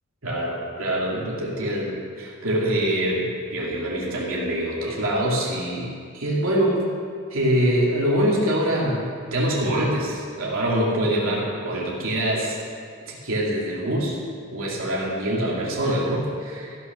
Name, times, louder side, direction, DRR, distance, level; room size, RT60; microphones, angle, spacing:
voice 1, 0.2-6.8 7.3-12.6 13.0-14.2 14.5-16.8, right 1 dB, 85° right, -4 dB, 2.7 m, -24 dB
15.0 x 6.2 x 6.1 m, 2.2 s
head